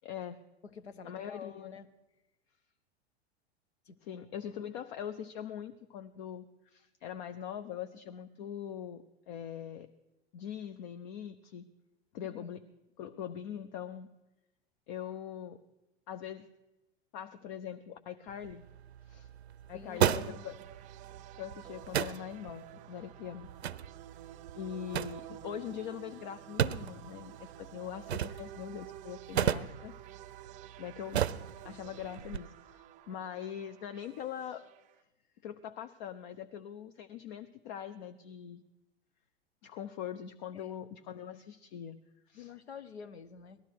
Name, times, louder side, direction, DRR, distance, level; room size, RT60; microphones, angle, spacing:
voice 1, 0.0-0.4 1.0-1.7 4.0-9.9 10.3-11.7 12.1-12.6 13.0-14.1 14.9-15.6 16.1-16.5 17.1-18.6 19.1-19.3 19.7-20.6 21.4-23.5 24.5-29.9 30.8-31.2 31.6-34.6 35.4-38.6 39.6-42.0 42.3-42.5, left 9 dB, 45° left, 10 dB, 0.6 m, -42 dB
voice 2, 0.7-1.9 3.9-4.2 12.3-12.5 19.7-20.5 40.5-40.8 42.3-43.6, left 6 dB, 75° left, 12 dB, 0.9 m, -48 dB
sound 1, 18.3-32.4, right 10 dB, 80° right, 0.5 m, -36 dB
sound 2, 19.9-35.0, right 13 dB, 25° right, 0.4 m, -51 dB
18.0 x 13.0 x 4.6 m, 1.0 s
figure-of-eight pair, 95°, 32 cm